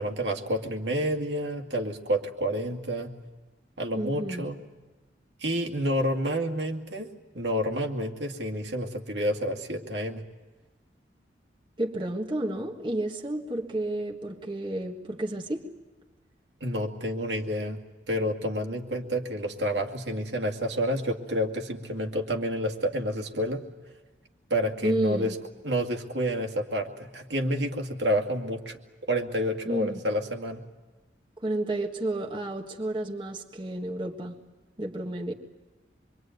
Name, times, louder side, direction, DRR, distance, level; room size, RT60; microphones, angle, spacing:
voice 1, 0.0-3.1 3.8-4.6 5.4-7.1 7.3-10.2 16.6-17.8 18.1-23.6 24.5-25.4 25.6-30.6, equal, 75° right, 3 dB, 2.3 m, -29 dB
voice 2, 3.9-4.5 11.8-15.7 24.8-25.3 29.6-30.0 31.4-34.4 34.8-35.3, right 1 dB, 25° right, 0 dB, 1.6 m, -31 dB
26.0 x 23.5 x 9.3 m, 1.2 s
head